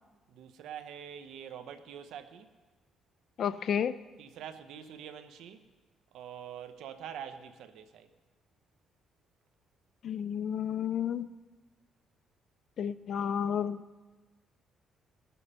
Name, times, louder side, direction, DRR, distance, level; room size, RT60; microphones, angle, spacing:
voice 1, 0.3-2.5 4.2-5.6 6.1-8.1, right 9 dB, 85° right, 10 dB, 0.9 m, -45 dB
voice 2, 3.4-4.0 10.0-11.3 12.8-13.8, left 8 dB, 60° left, 14 dB, 0.5 m, -31 dB
20.0 x 7.2 x 5.6 m, 1.3 s
cardioid pair, 90°, 0 cm